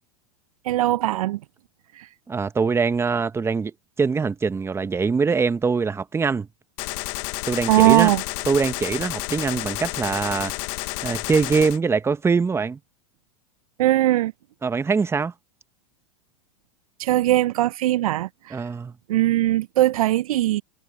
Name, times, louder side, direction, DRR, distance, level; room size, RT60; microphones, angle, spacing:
voice 1, 0.6-1.4 2.0-2.1 7.7-8.2 13.8-14.3 17.0-18.6 19.1-20.6, right 15 dB, 75° right, 0.5 m, -20 dB
voice 2, 2.3-3.7 4.0-6.5 7.5-8.1 8.5-10.5 11.0-12.8 14.6-15.3 18.5-18.9, right 5 dB, 15° right, 1.0 m, -23 dB
Gunshot gunfire, 6.8-11.8, left 28 dB, 50° left, 0.6 m, -31 dB
hypercardioid pair, 105°, 18 cm